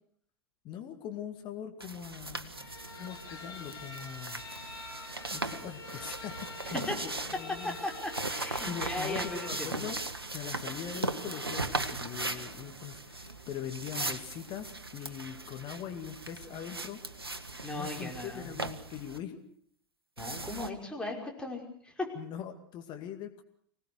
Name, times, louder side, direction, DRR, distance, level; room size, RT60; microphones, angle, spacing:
voice 1, 0.6-2.7 2.9-4.4 5.3-7.8 8.7-10.0 10.3-17.0 17.7-19.4 22.2-23.4, left 9 dB, 40° left, 6 dB, 2.2 m, -42 dB
sound 1, 1.8-19.2 20.2-20.7, right 2 dB, 85° right, 1.2 m, -38 dB
sound 2, 2.5-10.6, left 2 dB, 85° left, 3.8 m, -48 dB
Chicken rooster, 2.9-5.4 5.8-8.3, left 6 dB, 55° left, 6.6 m, -50 dB
voice 2, 7.6-9.8 17.6-18.5 20.2-22.1, left 2 dB, 5° left, 0 dB, 5.4 m, -37 dB
25.0 x 18.5 x 6.6 m, 0.62 s
figure-of-eight pair, 85°, 12 cm